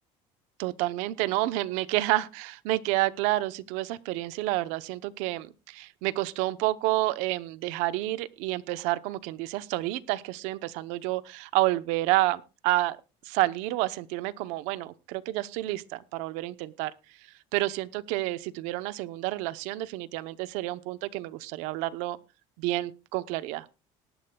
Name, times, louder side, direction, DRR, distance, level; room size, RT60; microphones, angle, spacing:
voice 1, 0.6-13.0 13.2-16.9 17.5-22.2 22.6-23.7, right 17 dB, 80° right, 15 dB, 0.8 m, -29 dB
19.0 x 12.0 x 2.3 m, 0.28 s
cardioid pair, 175°, 12 cm